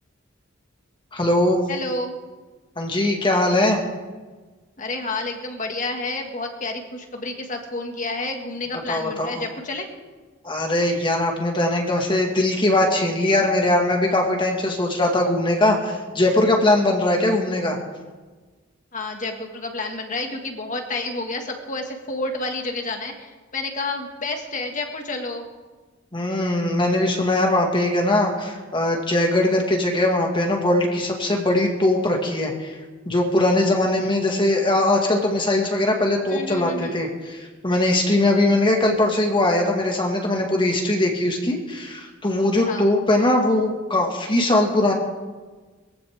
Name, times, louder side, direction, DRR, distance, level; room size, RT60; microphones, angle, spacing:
voice 1, 1.1-1.6 2.8-3.8 8.9-9.4 10.4-17.8 26.1-32.8 33.1-37.4 37.6-44.9, left 1 dB, 25° left, 1 dB, 2.0 m, -21 dB
voice 2, 1.7-2.2 4.8-9.9 18.9-25.4 36.3-37.0 42.7-42.9, left 2 dB, 40° left, 3 dB, 2.0 m, -30 dB
21.5 x 15.5 x 3.7 m, 1.3 s
head